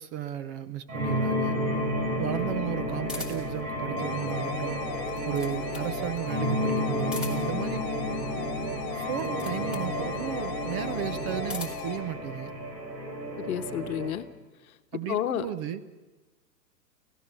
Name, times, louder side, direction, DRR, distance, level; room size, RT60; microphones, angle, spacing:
voice 1, 0.0-1.6 2.2-4.8 5.2-7.8 9.0-12.5 14.9-15.8, right 11 dB, 25° right, 11 dB, 0.7 m, -34 dB
sound 1, 0.9-14.2, equal, 55° right, 6.5 m, -31 dB
sound 2, 3.0-3.6 4.9-5.9 7.0-7.6 9.1-9.9 11.2-11.9, left 3 dB, ahead, 2.7 m, -40 dB
sound 3, 4.0-12.0, left 12 dB, 35° left, 2.1 m, -41 dB
voice 2, 13.4-14.3 15.1-15.5, left 11 dB, 60° left, 10 dB, 1.3 m, -30 dB
30.0 x 16.0 x 6.9 m, 1.2 s
hypercardioid pair, 125°, 50 cm